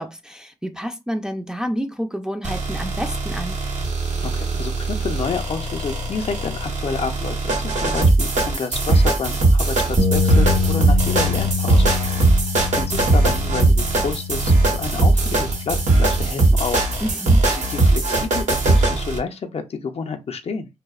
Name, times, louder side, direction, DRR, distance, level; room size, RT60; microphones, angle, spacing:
voice 1, 0.0-3.6 17.0-17.5, equal, 5° right, 0.4 m, -29 dB
sound 1, 2.4-19.2, right 2 dB, 70° right, 0.8 m, -20 dB
voice 2, 4.2-16.8 17.5-20.7, left 5 dB, 50° left, 0.5 m, -29 dB
sound 2, 10.0-16.2, left 4 dB, 40° right, 0.7 m, -25 dB
2.6 x 2.0 x 2.3 m
cardioid pair, 55°, 13 cm